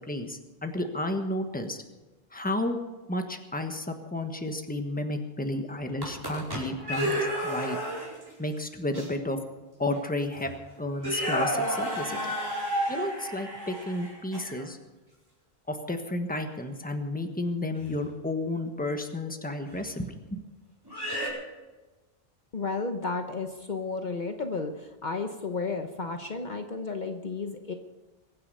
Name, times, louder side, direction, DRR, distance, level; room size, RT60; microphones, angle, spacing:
voice 1, 0.1-1.8 2.3-2.8 3.1-7.8 8.4-9.4 9.8-10.5 10.8-12.3 12.9-14.8 15.7-20.4, left 1 dB, 10° left, 5 dB, 1.3 m, -32 dB
sound 1, 5.8-8.3 8.9-9.1 9.9-10.0 10.3-10.6 11.0-14.6 17.8-18.0 19.7-19.8 20.8-21.3, equal, 20° right, 4.9 m, -31 dB
voice 2, 22.5-27.7, left 4 dB, 50° left, 5 dB, 1.1 m, -33 dB
22.5 x 9.6 x 5.5 m, 1.2 s
omnidirectional pair, 1.0 m